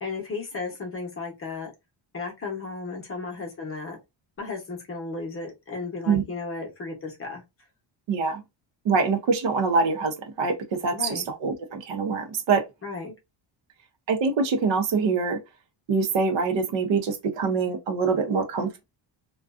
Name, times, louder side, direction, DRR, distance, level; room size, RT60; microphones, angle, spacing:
voice 1, 0.0-1.7 2.1-4.0 4.4-7.4 10.9-11.3 12.8-13.1, left 4 dB, 30° left, 0.7 m, -34 dB
voice 2, 8.1-8.4 8.8-12.6 14.1-15.4 15.9-18.8, right 4 dB, 65° right, 0.7 m, -24 dB
2.4 x 2.2 x 2.4 m
cardioid pair, 160°, 48 cm